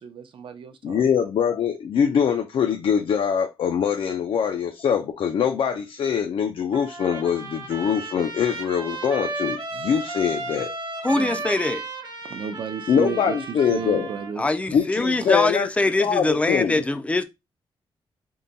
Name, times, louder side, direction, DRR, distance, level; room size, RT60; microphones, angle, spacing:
voice 1, 0.0-1.0 11.1-11.4 12.3-14.5 15.2-15.4, right 6 dB, 65° right, 0.6 m, -33 dB
voice 2, 0.8-10.7 12.9-14.1 14.7-15.7 16.0-16.8, left 7 dB, 70° left, 0.5 m, -23 dB
Trumpet, 6.7-14.3, right 3 dB, 45° right, 0.9 m, -34 dB
voice 3, 11.0-11.8 14.4-17.2, left 2 dB, 15° left, 0.4 m, -23 dB
3.7 x 2.2 x 3.9 m
wide cardioid pair, 160°, 9 cm